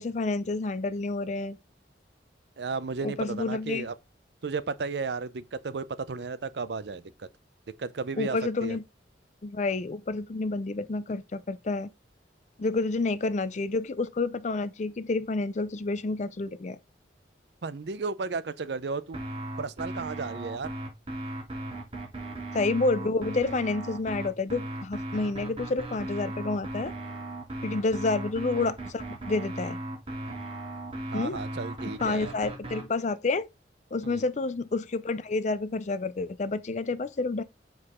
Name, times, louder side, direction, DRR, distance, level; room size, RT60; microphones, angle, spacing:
voice 1, 0.0-1.6 3.0-3.9 8.2-8.8 9.4-11.9 12.6-16.8 22.5-26.9 27.6-29.8 31.1-31.4 31.8-33.5 33.9-37.4, left 3 dB, 40° left, 0.5 m, -29 dB
voice 2, 2.6-3.9 4.4-7.3 7.8-8.8 17.6-19.2 19.6-20.7 27.8-27.9 31.1-32.3 34.0-34.2, right 4 dB, 65° right, 0.5 m, -34 dB
sound 1, 19.1-32.8, right 1 dB, 30° right, 2.8 m, -37 dB
6.5 x 4.7 x 3.6 m
head